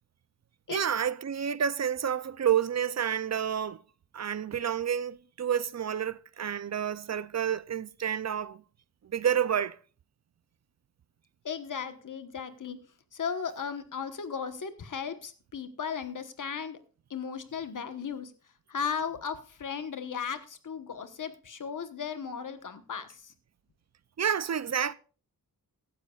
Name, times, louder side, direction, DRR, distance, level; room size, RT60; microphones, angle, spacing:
voice 1, 0.7-3.8 4.1-8.6 9.0-9.8 24.2-24.9, right 8 dB, 50° right, 0.5 m, -29 dB
voice 2, 11.4-12.8 13.1-16.8 17.1-18.3 18.7-23.3, left 6 dB, 60° left, 1.2 m, -36 dB
15.5 x 12.5 x 2.4 m
wide cardioid pair, 155°, 35 cm